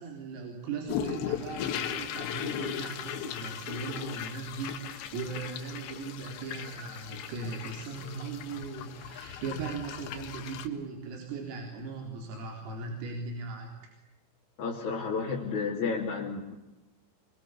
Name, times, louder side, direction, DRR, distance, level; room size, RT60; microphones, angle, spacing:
voice 1, 0.0-13.9, right 4 dB, 80° right, 1 dB, 6.5 m, -38 dB
sound 1, 0.9-10.7, left 10 dB, 65° left, 3.6 m, -37 dB
voice 2, 14.6-16.6, left 5 dB, 40° left, -3 dB, 3.6 m, -32 dB
25.0 x 24.5 x 8.4 m, 0.97 s
omnidirectional pair, 5.9 m